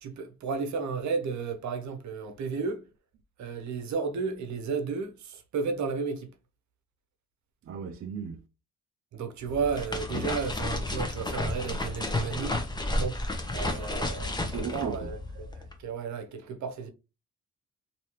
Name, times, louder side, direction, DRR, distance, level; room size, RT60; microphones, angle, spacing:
voice 1, 0.0-2.8 3.4-6.3 9.1-12.6 13.0-13.2 13.5-16.9, right 5 dB, 70° right, 0.8 m, -33 dB
voice 2, 7.7-8.4 14.4-15.0, right 6 dB, 45° right, 0.5 m, -35 dB
sound 1, 9.4-15.8, left 2 dB, 15° left, 0.9 m, -32 dB
3.1 x 2.8 x 3.0 m
cardioid pair, 90°, 30 cm